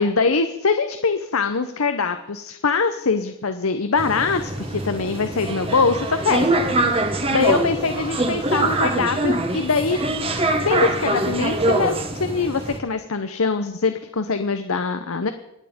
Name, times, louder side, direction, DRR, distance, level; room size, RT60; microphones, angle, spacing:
voice 1, 0.0-10.0 10.6-15.3, left 4 dB, 75° left, 8 dB, 0.8 m, -23 dB
sound 1, 4.0-12.8, right 2 dB, 25° right, 1.3 m, -23 dB
25.0 x 9.3 x 5.2 m, 0.87 s
head